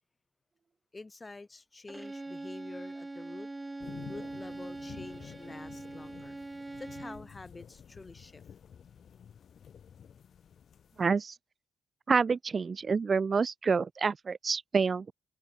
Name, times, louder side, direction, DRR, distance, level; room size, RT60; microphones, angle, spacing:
voice 1, 0.9-3.5 4.1-6.4 6.8-8.4, left 3 dB, 20° left, 2.5 m, -47 dB
Bowed string instrument, 1.9-7.3, right 2 dB, 15° right, 2.4 m, -42 dB
sound 1, 3.8-11.1, left 8 dB, 55° left, 1.0 m, -51 dB
voice 2, 11.0-11.3 12.1-15.1, right 5 dB, 35° right, 0.4 m, -28 dB
cardioid pair, 90°, 0 cm